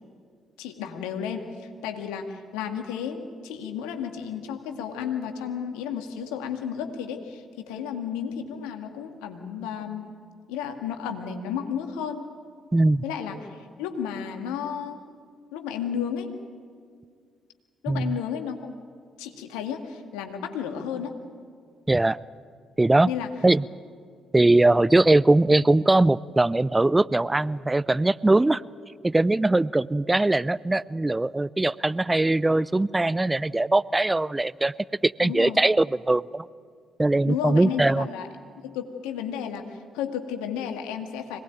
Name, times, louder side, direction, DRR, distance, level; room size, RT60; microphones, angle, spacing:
voice 1, 0.6-1.5 1.8-10.1 10.5-12.3 13.0-15.0 15.5-16.3 17.8-18.7 19.2-21.2 23.1-23.3 35.2-35.6 37.2-38.3 38.6-41.4, left 8 dB, 75° left, 5 dB, 2.1 m, -33 dB
voice 2, 12.7-13.0 17.9-18.2 21.9-22.2 22.8-23.1 23.4-23.6 24.3-28.6 29.0-34.7 35.0-36.5 37.0-38.1, right 2 dB, 20° right, 19 dB, 0.5 m, -21 dB
25.5 x 19.0 x 9.1 m, 2.1 s
hypercardioid pair, 45°, 0 cm